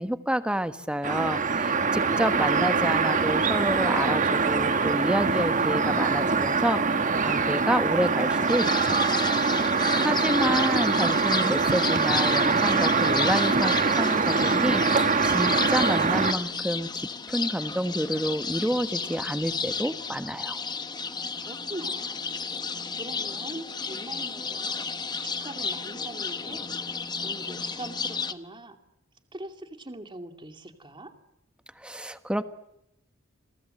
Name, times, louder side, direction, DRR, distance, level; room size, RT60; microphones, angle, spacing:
voice 1, 0.0-6.8 7.2-9.0 10.0-20.6 31.8-32.4, equal, 5° right, 10 dB, 1.3 m, -29 dB
sound 1, 1.0-16.3, right 4 dB, 40° right, 1.4 m, -24 dB
voice 2, 1.9-2.3 9.5-10.2 21.4-22.2 23.0-24.9 25.2-26.7 27.2-28.8 29.3-31.1, right 1 dB, 25° right, 6 dB, 2.4 m, -41 dB
sound 2, 8.5-28.3, left 5 dB, 20° left, 1.0 m, -33 dB
29.5 x 22.0 x 7.8 m, 0.82 s
head